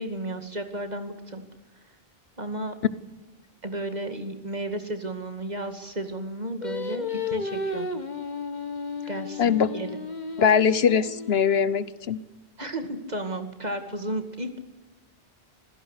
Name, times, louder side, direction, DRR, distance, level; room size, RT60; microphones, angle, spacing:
voice 1, 0.0-1.4 2.4-2.7 3.6-7.9 9.1-9.9 12.6-14.6, right 1 dB, 40° right, 7 dB, 2.5 m, -33 dB
Singing, 6.6-11.9, left 3 dB, 45° left, 2.0 m, -33 dB
voice 2, 9.4-9.7 10.4-12.2, left 7 dB, 75° left, 16 dB, 1.2 m, -21 dB
26.5 x 16.5 x 8.3 m, 1.1 s
omnidirectional pair, 1.0 m